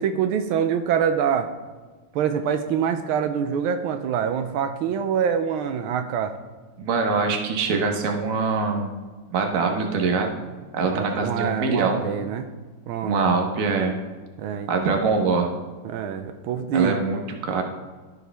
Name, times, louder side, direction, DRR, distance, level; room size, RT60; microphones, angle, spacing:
voice 1, 0.0-1.5 2.1-6.3 10.9-12.5 12.9-13.2 14.4-14.7 15.8-17.0, right 7 dB, 85° right, 8 dB, 1.5 m, -25 dB
voice 2, 6.8-8.9 9.3-10.4 10.7-12.1 13.0-14.0 14.7-15.5 16.7-17.6, right 4 dB, 50° right, 3 dB, 1.2 m, -23 dB
14.0 x 4.7 x 3.4 m, 1.4 s
omnidirectional pair, 2.3 m